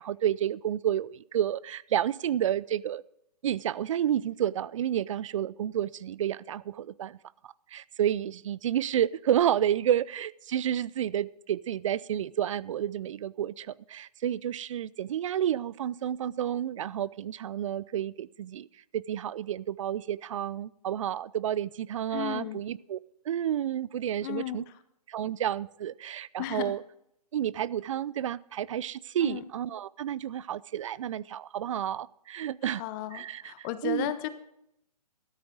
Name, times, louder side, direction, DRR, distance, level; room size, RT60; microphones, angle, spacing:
voice 1, 0.0-3.0 3.4-7.2 7.4-18.7 18.9-23.0 23.3-24.6 25.1-26.8 27.3-32.8 33.1-34.1, right 10 dB, 50° right, 22 dB, 0.4 m, -30 dB
voice 2, 22.1-22.6 24.2-24.7 26.4-26.7 29.2-29.4 32.6-34.3, left 13 dB, 30° left, 12 dB, 0.8 m, -34 dB
14.0 x 13.0 x 3.8 m, 0.79 s
figure-of-eight pair, 130°, 21 cm